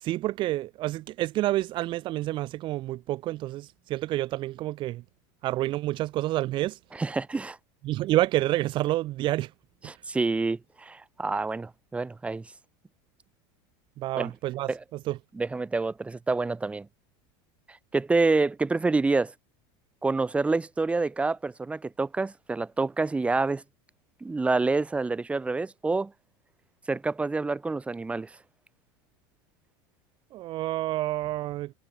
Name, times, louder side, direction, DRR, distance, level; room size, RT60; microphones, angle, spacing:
voice 1, 0.0-5.0 5.4-6.8 7.8-9.5 14.0-14.7 15.1-15.2 30.3-31.7, right 16 dB, 40° right, 5.0 m, -28 dB
voice 2, 6.9-7.6 9.8-12.5 14.1-14.3 14.7-14.8 15.3-16.9 17.7-19.3 20.0-23.6 24.2-26.1 26.9-28.3, right 3 dB, 10° right, 6.7 m, -27 dB
supercardioid pair, 150°, 12 cm